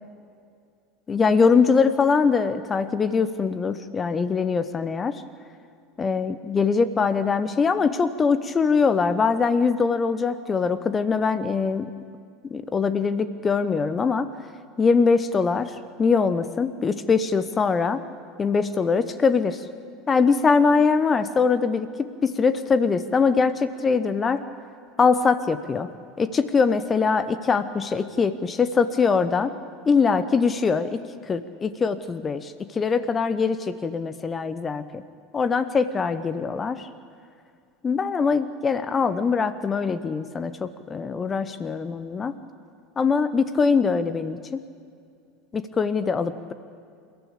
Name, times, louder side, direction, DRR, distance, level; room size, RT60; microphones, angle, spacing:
voice 1, 1.1-5.2 6.0-11.9 12.5-14.3 14.8-18.0 18.4-19.6 20.1-24.4 25.0-25.9 26.2-29.5 29.9-31.0 31.3-35.0 35.3-36.8 37.8-42.3 43.0-44.6 45.5-46.5, left 5 dB, 25° left, 13 dB, 0.9 m, -22 dB
29.0 x 14.0 x 8.6 m, 2.4 s
figure-of-eight pair, 75°, 0 cm